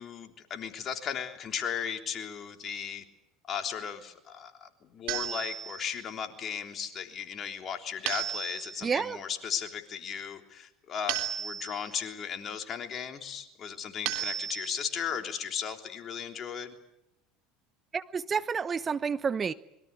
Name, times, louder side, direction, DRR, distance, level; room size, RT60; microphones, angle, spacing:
voice 1, 0.0-3.0 3.5-16.7, left 7 dB, 40° left, 5 dB, 3.5 m, -36 dB
sound 1, 5.1-6.0 8.1-8.9 11.1-12.0 14.0-15.0, right 10 dB, 65° right, 3.6 m, -34 dB
voice 2, 8.8-9.2 17.9-19.5, right 6 dB, 30° right, 15 dB, 0.9 m, -29 dB
25.5 x 23.0 x 8.4 m, 0.82 s
hypercardioid pair, 75°, 0 cm